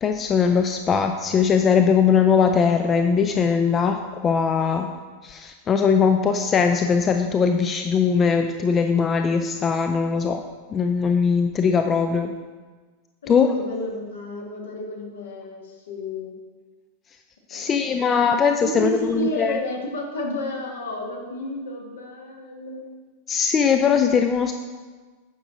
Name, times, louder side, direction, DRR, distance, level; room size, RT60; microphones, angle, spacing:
voice 1, 0.0-4.9 5.2-10.4 10.7-12.3 13.3-13.5 17.5-19.6 23.3-24.5, left 6 dB, 25° left, 6 dB, 0.4 m, -20 dB
voice 2, 13.2-16.3 17.5-23.0, left 1 dB, 65° left, 0 dB, 1.6 m, -31 dB
9.1 x 5.9 x 3.8 m, 1.4 s
figure-of-eight pair, 90°, 0 cm